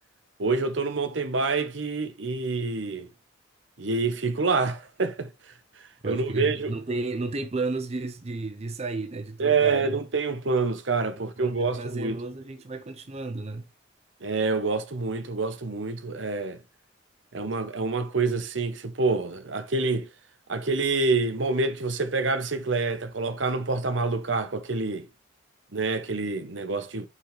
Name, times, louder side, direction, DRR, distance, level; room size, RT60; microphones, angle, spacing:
voice 1, 0.4-3.1 3.8-5.3 6.0-6.7 9.4-12.2 14.2-16.6 17.3-20.1 20.5-25.1 25.7-27.1, right 3 dB, 70° right, 1.0 m, -27 dB
voice 2, 6.0-10.0 11.1-13.7, right 3 dB, 35° right, 0.6 m, -33 dB
5.5 x 5.0 x 3.7 m
head